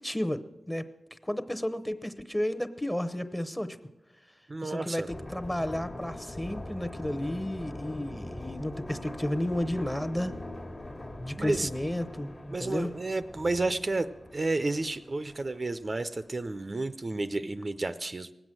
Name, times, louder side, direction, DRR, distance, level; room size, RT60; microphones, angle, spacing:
voice 1, 0.0-3.8 4.6-10.4 11.2-12.9, left 1 dB, 10° left, 12 dB, 0.8 m, -32 dB
voice 2, 4.5-5.1 11.4-11.7 12.5-18.3, right 2 dB, 40° right, 11 dB, 0.5 m, -31 dB
sound 1, 5.1-16.5 16.8-16.9, left 1 dB, 35° left, 1.3 m, -42 dB
19.0 x 8.0 x 7.6 m, 1.0 s
wide cardioid pair, 70°, 0 cm